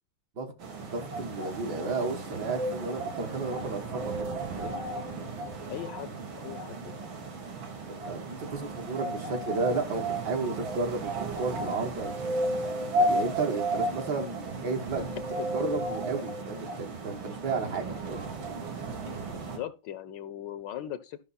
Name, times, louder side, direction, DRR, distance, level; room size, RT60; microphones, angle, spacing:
sound 1, 0.6-19.6, right 2 dB, 85° right, 2.8 m, -34 dB
voice 1, 0.8-4.8 7.9-12.1 13.0-15.2 15.5-18.3, right 3 dB, 60° right, 1.9 m, -33 dB
voice 2, 5.7-6.2 6.4-7.1 15.4-15.5 19.3-21.2, left 11 dB, 70° left, 1.2 m, -39 dB
12.5 x 6.1 x 4.1 m
omnidirectional pair, 2.1 m